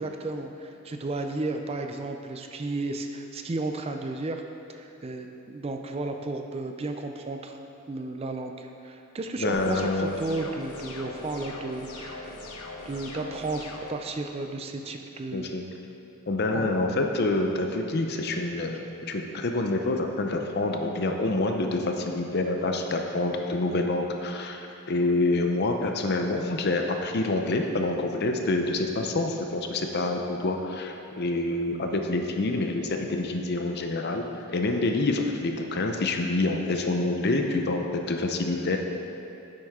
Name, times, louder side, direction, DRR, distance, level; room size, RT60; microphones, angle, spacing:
voice 1, 0.0-4.4 4.7-7.6 7.9-12.4 12.8-15.5 16.5-16.7, right 2 dB, 25° right, 5 dB, 0.4 m, -33 dB
voice 2, 9.4-10.1 15.3-15.6 16.3-34.2 34.5-38.8, left 2 dB, 50° left, 4 dB, 0.6 m, -27 dB
sound 1, 9.5-13.9, left 2 dB, 85° left, 1.1 m, -40 dB
10.0 x 7.7 x 3.6 m, 2.8 s
head